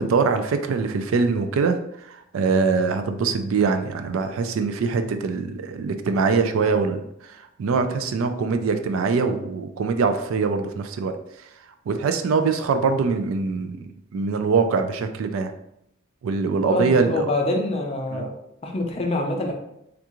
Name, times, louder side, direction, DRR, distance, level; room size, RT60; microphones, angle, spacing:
voice 1, 0.0-11.1 11.9-15.5 16.2-17.3 18.1-18.2, right 4 dB, 85° right, 8 dB, 0.3 m, -23 dB
voice 2, 16.7-18.3 18.6-19.5, left 2 dB, 30° left, 2 dB, 0.5 m, -25 dB
3.5 x 2.4 x 2.9 m, 0.79 s
head